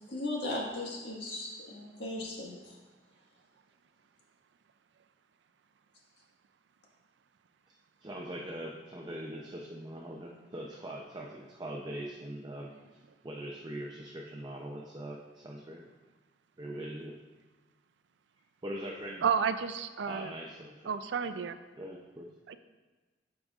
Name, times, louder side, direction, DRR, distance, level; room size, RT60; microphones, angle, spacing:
voice 1, 0.1-2.8, left 1 dB, 70° left, -3 dB, 1.6 m, -37 dB
voice 2, 8.0-12.7 13.2-15.9 16.6-17.2 18.6-19.3 20.1-20.9 21.8-22.3, right 1 dB, 25° right, -1 dB, 0.6 m, -41 dB
voice 3, 19.2-20.3 20.9-21.6 22.5-22.6, right 6 dB, 90° right, 11 dB, 0.4 m, -31 dB
11.5 x 4.9 x 2.4 m, 1.3 s
head